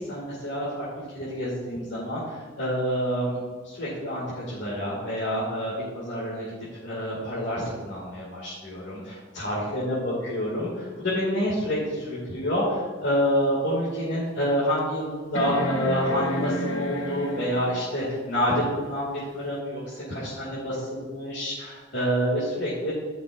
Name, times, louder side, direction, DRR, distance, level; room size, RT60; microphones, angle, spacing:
voice 1, 0.1-0.9 1.1-6.4 6.7-22.9, equal, 60° left, -8 dB, 2.4 m, -28 dB
sound 1, 13.2-13.3 13.9-14.0 15.3-17.8 19.5-19.6, left 1 dB, 85° left, 1.0 m, -29 dB
13.5 x 5.9 x 2.6 m, 1.5 s
head